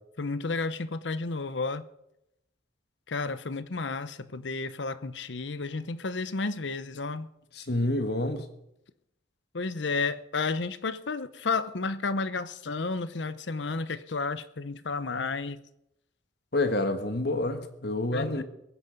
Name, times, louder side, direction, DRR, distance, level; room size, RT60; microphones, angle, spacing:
voice 1, 0.2-1.8 3.1-7.3 9.5-15.6 18.1-18.4, left 4 dB, 75° left, 0.8 m, -32 dB
voice 2, 7.6-8.5 16.5-18.4, left 2 dB, 60° left, 1.6 m, -28 dB
22.0 x 9.7 x 5.3 m
head